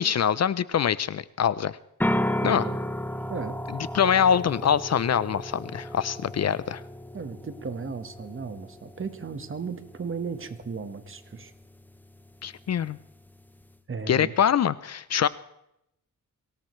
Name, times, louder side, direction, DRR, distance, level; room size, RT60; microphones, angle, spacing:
voice 1, 0.0-1.8 2.4-2.6 3.9-6.8 12.4-13.0 14.1-15.3, left 8 dB, 50° left, 17 dB, 0.5 m, -24 dB
sound 1, 2.0-13.8, left 1 dB, 5° left, 0.7 m, -35 dB
voice 2, 2.4-2.8 3.3-3.6 7.1-11.5 13.9-14.3, right 5 dB, 35° right, 9 dB, 1.4 m, -35 dB
24.0 x 18.0 x 3.2 m, 0.82 s
cardioid pair, 100°, 34 cm